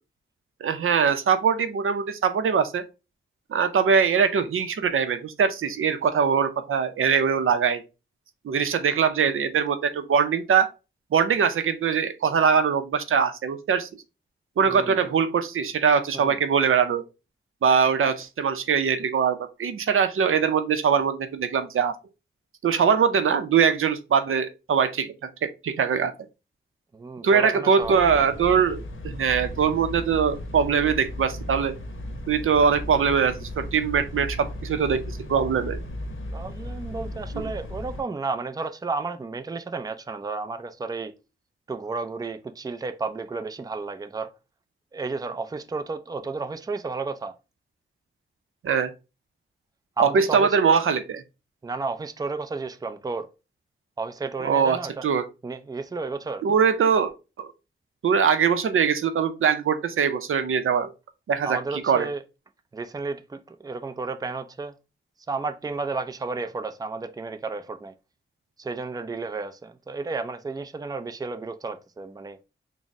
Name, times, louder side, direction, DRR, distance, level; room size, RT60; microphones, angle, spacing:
voice 1, 0.6-2.8 3.5-7.8 8.4-10.7 11.1-13.9 14.6-17.0 17.6-22.0 22.6-26.1 27.2-31.7 32.3-35.8 48.6-48.9 50.0-51.2 54.4-55.2 56.4-57.1 57.4-57.5 58.0-60.9 61.3-62.1, right 6 dB, 85° right, 0.5 m, -22 dB
voice 2, 14.7-15.1 16.1-16.4 26.9-28.2 36.3-41.1 41.7-44.3 44.9-47.3 50.0-50.6 51.6-53.3 54.0-55.0 55.4-56.4 61.4-62.2 62.7-64.7 65.3-67.9 68.6-72.4, right 4 dB, 20° right, 0.4 m, -32 dB
sound 1, 27.8-38.0, left 1 dB, 75° left, 0.7 m, -36 dB
4.0 x 2.0 x 3.4 m
wide cardioid pair, 70°, 21 cm